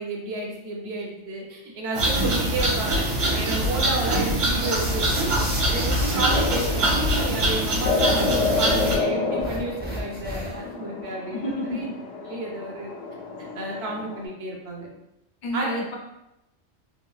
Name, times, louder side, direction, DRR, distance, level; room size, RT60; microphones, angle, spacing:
voice 1, 0.0-3.0 3.3-5.3 5.7-11.9 12.2-12.9 13.5-14.9 15.5-15.8, right 2 dB, 65° right, -1 dB, 0.9 m, -31 dB
sound 1, 1.9-9.0, right 1 dB, 85° right, 1.4 m, -23 dB
sound 2, 4.7-6.7 9.4-10.7, right 1 dB, 15° right, 0.3 m, -33 dB
sound 3, 6.3-14.2, left 4 dB, 90° left, 1.0 m, -29 dB
voice 2, 11.3-11.9 15.4-16.0, left 1 dB, 60° left, -1 dB, 0.5 m, -29 dB
3.2 x 2.6 x 2.3 m, 0.88 s
omnidirectional pair, 1.2 m